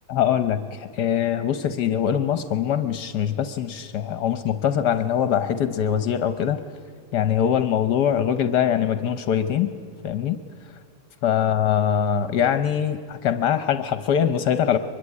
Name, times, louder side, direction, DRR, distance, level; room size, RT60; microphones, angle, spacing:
voice 1, 0.1-6.6 7.1-9.7 10.0-10.4 11.2-14.8, left 9 dB, 75° left, 11 dB, 1.4 m, -23 dB
23.0 x 22.5 x 9.7 m, 2.3 s
omnidirectional pair, 1.8 m